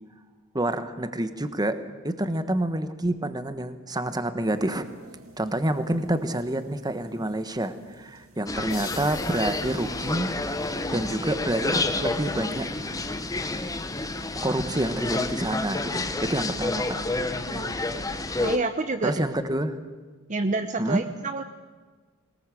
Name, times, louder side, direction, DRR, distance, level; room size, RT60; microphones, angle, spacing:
voice 1, 0.5-1.8 2.0-4.8 5.4-10.3 10.9-12.7 14.4-17.0 19.0-19.8 20.8-21.0, right 1 dB, 20° right, 10 dB, 1.3 m, -28 dB
sound 1, 4.4-15.8, right 1 dB, 90° right, 2.4 m, -49 dB
sound 2, 8.5-18.6, left 2 dB, 15° left, 1.0 m, -29 dB
sound 3, 8.7-10.8, left 8 dB, 75° left, 2.9 m, -43 dB
voice 2, 18.4-19.2 20.3-21.4, right 3 dB, 35° right, 7 dB, 0.9 m, -28 dB
22.0 x 19.5 x 7.8 m, 1.4 s
head